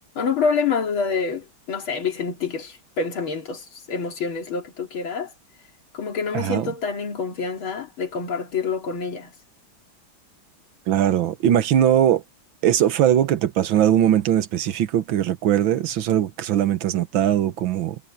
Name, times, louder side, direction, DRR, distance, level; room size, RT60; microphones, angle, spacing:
voice 1, 0.2-5.3 5.9-9.3, left 5 dB, 80° left, 3.5 m, -27 dB
voice 2, 6.3-6.7 10.9-12.2 12.6-18.0, right 10 dB, 75° right, 1.8 m, -20 dB
omnidirectional pair, 2.2 m